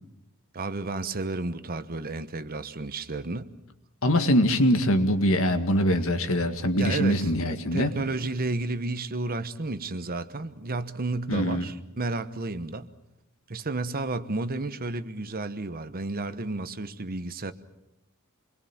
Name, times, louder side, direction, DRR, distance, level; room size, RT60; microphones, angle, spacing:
voice 1, 0.5-3.5 6.8-12.9 13.5-17.5, right 2 dB, 45° right, 1.1 m, -32 dB
voice 2, 4.0-7.9 11.3-11.6, equal, 70° left, 2.0 m, -23 dB
27.5 x 21.5 x 7.3 m
head